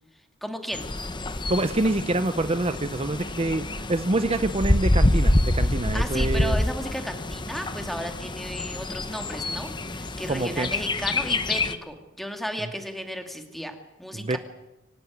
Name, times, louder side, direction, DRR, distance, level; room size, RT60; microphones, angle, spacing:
voice 1, 0.4-0.8 5.9-14.4, equal, ahead, 5 dB, 2.4 m, -34 dB
Bird, 0.7-11.8, left 1 dB, 25° left, 1.0 m, -26 dB
voice 2, 1.5-6.6 10.3-10.7 12.6-12.7 14.1-14.4, right 2 dB, 30° right, 10 dB, 0.8 m, -26 dB
26.0 x 14.5 x 9.4 m, 1.0 s
head